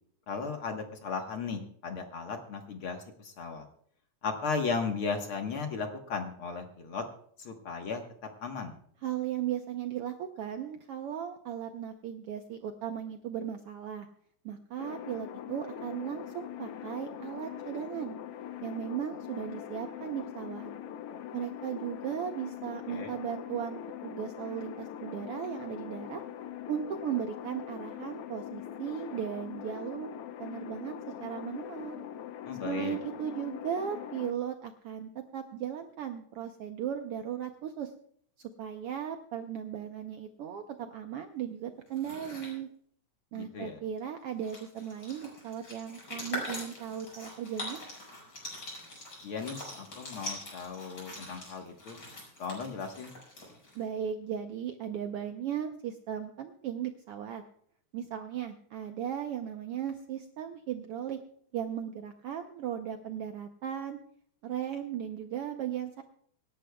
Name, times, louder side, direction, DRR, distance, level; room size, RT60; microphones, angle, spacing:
voice 1, 0.3-3.7 4.2-7.0 7.4-8.0 8.4-8.7 22.9-23.1 32.5-33.0 43.3-43.8 49.2-52.0 52.4-53.2, left 5 dB, 55° left, 4 dB, 1.8 m, -36 dB
voice 2, 9.0-14.1 14.4-18.2 18.6-20.7 21.3-26.2 26.7-30.1 30.4-32.0 32.6-37.9 38.4-42.7 43.3-47.8 53.7-57.4 57.9-61.2 61.5-64.0 64.4-66.0, right 9 dB, 70° right, 6 dB, 1.4 m, -37 dB
sound 1, 14.8-34.3, left 10 dB, 70° left, 1.5 m, -42 dB
sound 2, 41.9-42.5 44.0-44.1 44.3-53.8, left 1 dB, 35° left, 6.1 m, -43 dB
25.5 x 11.5 x 2.3 m, 0.62 s
omnidirectional pair, 3.4 m